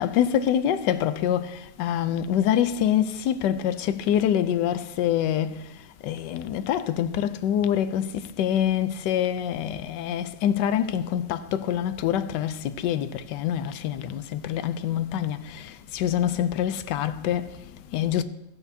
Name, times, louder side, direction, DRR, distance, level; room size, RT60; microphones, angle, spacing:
voice 1, 0.0-18.2, left 10 dB, 85° left, 1.2 m, -26 dB
14.5 x 8.8 x 2.7 m
omnidirectional pair, 1.8 m